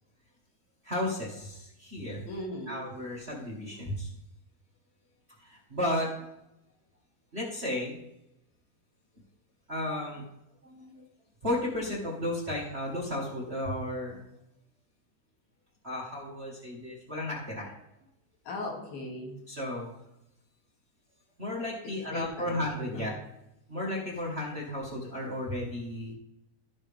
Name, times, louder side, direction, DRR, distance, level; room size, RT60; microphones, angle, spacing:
voice 1, 0.8-2.2 2.7-4.1 5.4-6.2 7.3-7.9 9.7-10.2 10.6-11.0 11.4-14.2 15.8-17.8 19.5-19.9 21.4-23.1 23.7-26.1, left 1 dB, 35° right, -4 dB, 0.9 m, -34 dB
voice 2, 2.3-2.8 18.5-19.4 22.1-22.6 22.8-23.1, left 1 dB, 65° left, -1 dB, 3.8 m, -38 dB
15.5 x 5.5 x 3.4 m, 0.86 s
omnidirectional pair, 4.7 m